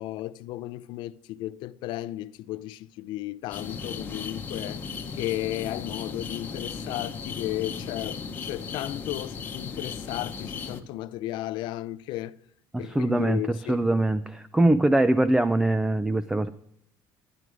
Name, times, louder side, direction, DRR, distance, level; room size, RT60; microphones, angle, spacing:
voice 1, 0.0-12.4 12.8-13.8, left 15 dB, 65° left, 0.5 m, -34 dB
sound 1, 3.5-10.8, left 5 dB, 20° left, 0.9 m, -36 dB
voice 2, 12.9-16.5, right 1 dB, 5° right, 0.3 m, -22 dB
11.5 x 11.0 x 4.8 m
cardioid pair, 170°, 9 cm